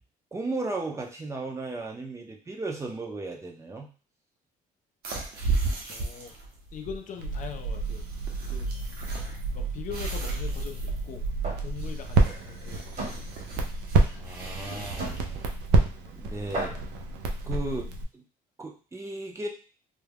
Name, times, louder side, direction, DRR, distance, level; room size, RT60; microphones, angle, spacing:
voice 1, 0.3-3.9 14.1-15.2 16.2-16.8 17.4-17.8 18.1-18.2 18.6-19.5, right 2 dB, 15° right, 0 dB, 0.5 m, -35 dB
sound 1, 5.0-16.9, right 3 dB, 65° right, 0.8 m, -36 dB
voice 2, 5.9-6.4 6.7-8.0 8.4-9.0 9.5-11.2 11.6-13.2 14.6-14.9 16.5-16.7 17.6-17.8, left 7 dB, 50° left, 5 dB, 0.4 m, -42 dB
Crackle, 7.2-18.0, right 3 dB, 90° right, 0.5 m, -29 dB
sound 2, 11.4-11.7 12.1-12.3 13.0-13.2 14.1-14.2 15.0-15.2 16.1-16.2 16.5-17.0, right 2 dB, 50° right, 1.1 m, -34 dB
2.3 x 2.1 x 3.3 m, 0.37 s
cardioid pair, 110°, 17 cm